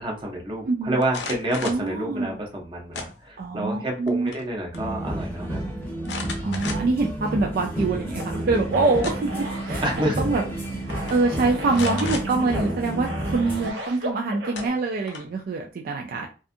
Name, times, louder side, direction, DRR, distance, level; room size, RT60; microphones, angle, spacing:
voice 1, 0.0-5.6 9.8-10.2, right 1 dB, 30° right, 0 dB, 0.7 m, -28 dB
voice 2, 0.7-1.0 1.6-2.3 3.4-4.3 6.4-9.8 10.2-10.4 10.8-16.3, right 3 dB, 55° right, 1 dB, 0.3 m, -25 dB
sound 1, 1.0-1.9 2.9-3.5 3.9-4.5 4.7-4.8 6.0-7.1 7.6-7.7 8.7-9.4 10.4-10.6 10.9-11.2 11.7-12.3 14.0-14.1 14.5-15.4, left 4 dB, 80° left, 0.6 m, -35 dB
sound 2, 4.7-13.7, right 1 dB, 15° left, 0.7 m, -30 dB
sound 3, 8.2-14.7, equal, 75° right, 0.7 m, -35 dB
2.6 x 2.3 x 2.5 m, 0.35 s
head